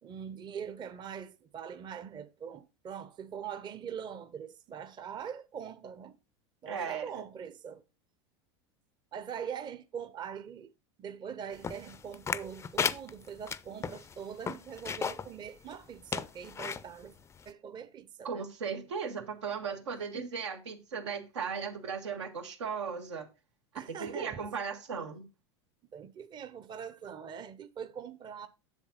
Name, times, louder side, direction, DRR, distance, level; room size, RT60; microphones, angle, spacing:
voice 1, 0.0-6.2 6.6-7.8 9.1-10.7 11.0-17.2 17.5-18.5 20.1-20.3 23.7-24.5 25.9-28.5, right 8 dB, 30° right, 0.7 m, -42 dB
voice 2, 6.7-7.2 18.2-23.3 24.0-25.3, right 6 dB, 90° right, 1.6 m, -37 dB
sound 1, 11.6-15.3 15.7-15.8 16.1-16.8 17.4-17.5, left 6 dB, 20° left, 0.5 m, -34 dB
7.3 x 7.2 x 4.0 m
hypercardioid pair, 100°, 14 cm